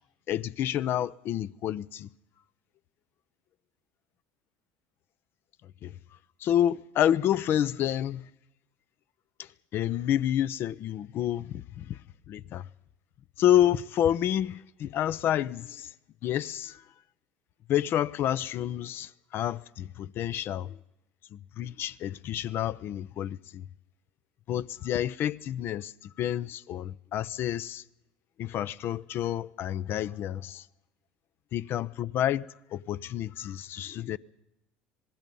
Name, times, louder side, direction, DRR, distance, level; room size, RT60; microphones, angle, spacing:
voice 1, 0.3-2.1 5.8-5.9 6.4-8.3 9.4-12.0 12.3-12.7 13.4-15.9 16.2-16.8 17.7-20.8 21.3-23.7 24.5-27.8 28.4-30.6 31.5-32.5 32.7-34.2, left 11 dB, 55° left, 0.6 m, -29 dB
26.5 x 19.5 x 5.4 m
supercardioid pair, 85°, 5 cm